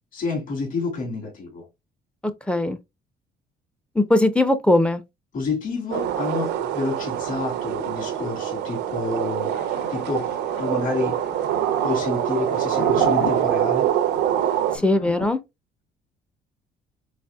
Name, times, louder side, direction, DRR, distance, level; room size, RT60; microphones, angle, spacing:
voice 1, 0.1-1.7 5.3-9.5 9.9-11.2 11.8-13.9, left 3 dB, 55° left, 2.3 m, -29 dB
voice 2, 2.5-2.8 4.0-5.0 14.8-15.4, left 1 dB, 5° left, 0.5 m, -19 dB
sound 1, 5.9-14.8, right 11 dB, 80° right, 0.6 m, -24 dB
Thunder, 9.5-15.3, left 9 dB, 85° left, 0.7 m, -37 dB
4.1 x 3.2 x 2.3 m
cardioid pair, 110°, 17 cm